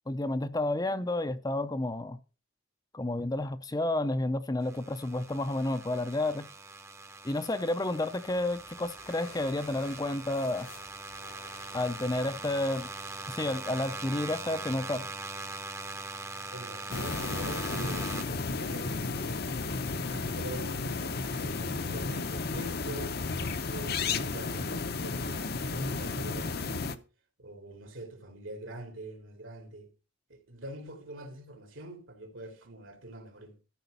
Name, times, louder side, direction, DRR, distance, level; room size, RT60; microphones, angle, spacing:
voice 1, 0.1-2.2 2.9-6.5 7.2-10.7 11.7-12.9 13.3-15.1, left 2 dB, 20° left, 0.6 m, -31 dB
sound 1, 4.6-18.2, right 3 dB, 15° right, 0.8 m, -41 dB
sound 2, 8.2-13.3, left 3 dB, 90° left, 4.5 m, -55 dB
voice 2, 16.5-19.6 20.1-23.2 23.6-27.0 27.4-29.9 30.3-33.6, right 1 dB, 75° right, 3.1 m, -44 dB
sound 3, 16.9-27.0, left 4 dB, 50° left, 0.8 m, -33 dB
13.5 x 5.0 x 6.7 m
head